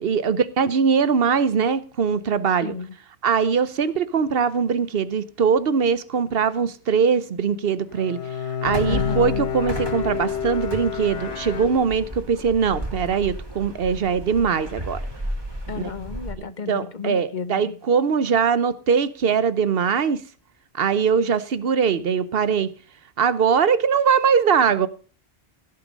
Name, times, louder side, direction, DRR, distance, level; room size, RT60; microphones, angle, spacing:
voice 1, 0.0-2.7 3.2-8.2 8.6-15.0 15.7-15.9 16.7-20.2 20.7-22.7 23.2-24.9, right 6 dB, 65° right, 1.0 m, -21 dB
voice 2, 2.6-2.9 8.9-9.5 15.7-17.7, left 6 dB, 50° left, 0.9 m, -32 dB
Bowed string instrument, 7.9-12.3, left 7 dB, 80° left, 1.5 m, -29 dB
sound 1, 8.6-16.3, right 1 dB, 25° right, 2.7 m, -34 dB
16.5 x 6.9 x 5.1 m
omnidirectional pair, 1.1 m